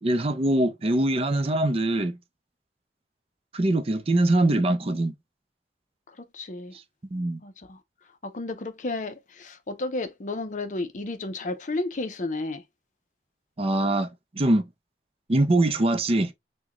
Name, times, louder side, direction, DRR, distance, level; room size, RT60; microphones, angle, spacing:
voice 1, 0.0-2.2 3.5-5.1 7.1-7.4 13.6-14.1 14.3-14.7 15.3-16.3, right 1 dB, 35° right, 0.5 m, -23 dB
voice 2, 6.1-6.8 7.4-7.8 8.2-12.6, left 2 dB, 45° left, 0.6 m, -32 dB
6.0 x 2.2 x 2.9 m
head